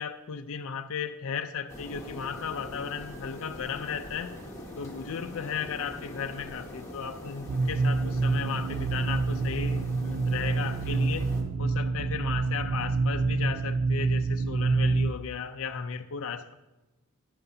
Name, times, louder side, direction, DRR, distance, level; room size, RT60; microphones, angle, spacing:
voice 1, 0.0-4.4 4.8-11.3 11.6-16.5, left 6 dB, 65° left, 0.5 m, -35 dB
sound 1, 1.7-11.4, left 1 dB, 15° left, 1.5 m, -43 dB
sound 2, 7.5-15.1, right 3 dB, 55° right, 0.4 m, -27 dB
12.0 x 10.5 x 2.7 m
head